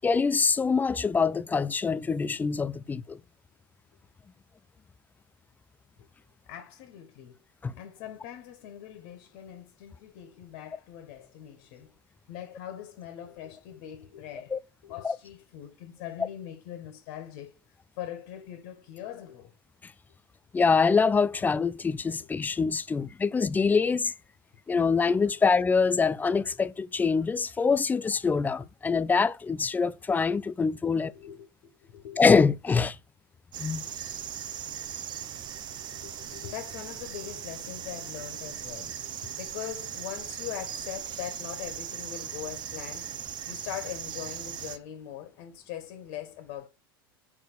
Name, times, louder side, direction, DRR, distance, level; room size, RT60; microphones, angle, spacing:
voice 1, 0.0-3.2 7.6-7.7 14.5-14.6 15.0-15.1 20.5-24.1 24.7-31.1 32.2-33.0 33.6-33.8, left 5 dB, 15° left, 0.4 m, -24 dB
voice 2, 6.5-7.4 7.7-11.9 12.3-14.5 14.8-17.5 18.0-19.5 31.0-31.5 31.8-32.2 35.9-43.1 43.5-46.7, left 11 dB, 55° left, 1.7 m, -41 dB
sound 1, 33.5-44.8, right 9 dB, 35° right, 0.8 m, -38 dB
6.4 x 4.4 x 6.3 m
hypercardioid pair, 90°, 12 cm